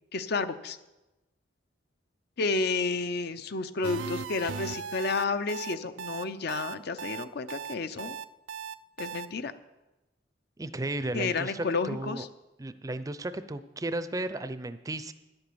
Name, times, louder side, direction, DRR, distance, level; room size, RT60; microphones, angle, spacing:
voice 1, 0.1-0.8 2.4-8.2 9.0-9.5 11.1-12.3, left 4 dB, 60° left, 12 dB, 0.6 m, -31 dB
sound 1, 3.8-9.3, right 7 dB, 85° right, 0.5 m, -38 dB
voice 2, 10.6-12.2 12.6-15.1, right 2 dB, 20° right, 12 dB, 0.5 m, -34 dB
10.5 x 7.9 x 7.0 m, 1.0 s
head